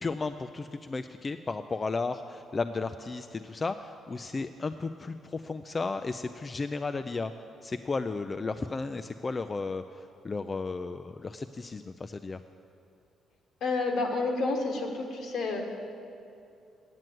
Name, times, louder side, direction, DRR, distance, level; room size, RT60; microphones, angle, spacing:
voice 1, 0.0-7.3 7.6-12.4, left 3 dB, 30° left, 9 dB, 0.3 m, -34 dB
voice 2, 13.6-15.6, left 3 dB, 70° left, 2 dB, 1.5 m, -29 dB
9.2 x 7.7 x 7.7 m, 2.6 s
cardioid pair, 90°, 0 cm